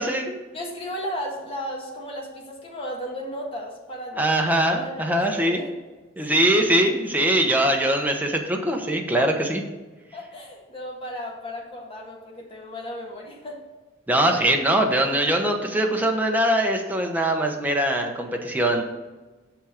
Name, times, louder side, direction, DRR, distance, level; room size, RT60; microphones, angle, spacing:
voice 1, 0.0-0.4 4.2-5.6 6.2-9.6 14.1-18.8, right 1 dB, 10° right, 2 dB, 0.9 m, -22 dB
voice 2, 0.5-4.2 4.6-5.7 6.3-6.4 10.1-13.6, equal, 30° left, -2 dB, 1.6 m, -34 dB
6.4 x 6.0 x 5.0 m, 1.2 s
head